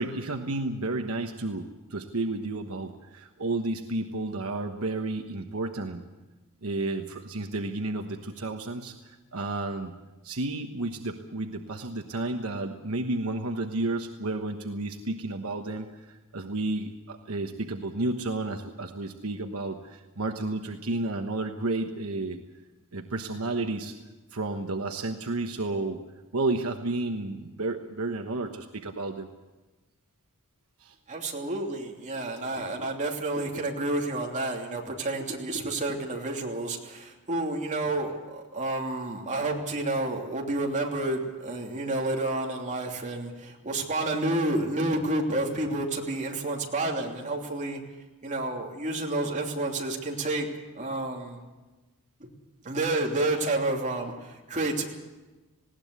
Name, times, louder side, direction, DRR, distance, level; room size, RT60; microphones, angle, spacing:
voice 1, 0.0-6.0 6.6-9.9 10.2-22.4 22.9-24.0 24.3-26.0 26.3-29.3 30.8-30.9, right 2 dB, 70° right, 5 dB, 1.2 m, -32 dB
voice 2, 31.1-47.8 48.2-50.5 50.7-51.4 52.2-52.3 52.6-54.8, right 2 dB, 35° right, 0 dB, 3.0 m, -30 dB
20.0 x 17.5 x 8.2 m, 1.2 s
head